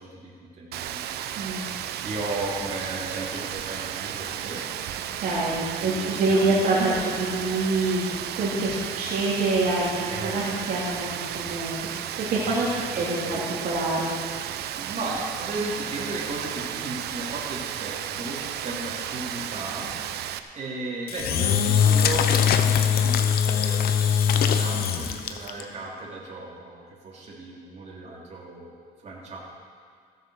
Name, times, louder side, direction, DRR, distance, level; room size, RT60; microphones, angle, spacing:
voice 1, 0.0-1.5 2.0-4.6 5.2-6.8 10.1-10.8 12.4-13.7 14.7-19.9 20.5-29.4, right 2 dB, 40° right, -5 dB, 3.3 m, -36 dB
Rain, 0.7-20.4, right 10 dB, 75° right, 0.7 m, -34 dB
voice 2, 1.4-1.7 5.1-8.0 8.3-14.1, right 2 dB, 60° right, -6 dB, 3.0 m, -26 dB
Engine / Drill, 21.1-25.6, left 8 dB, 65° left, 0.9 m, -21 dB
15.0 x 8.0 x 6.5 m, 2.1 s
cardioid pair, 110°, 17 cm